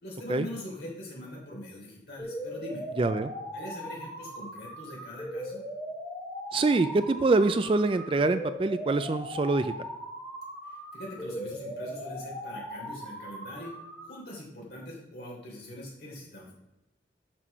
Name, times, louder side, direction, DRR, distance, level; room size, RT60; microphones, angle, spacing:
voice 1, 0.0-2.8 3.5-5.6 10.7-13.7 14.0-16.5, left 1 dB, 65° left, -3 dB, 3.1 m, -42 dB
sound 1, 2.2-14.2, equal, 15° left, 2.1 m, -39 dB
voice 2, 3.0-3.3 6.5-9.7, right 3 dB, 30° right, 11 dB, 0.3 m, -25 dB
6.2 x 6.1 x 5.4 m, 0.94 s
head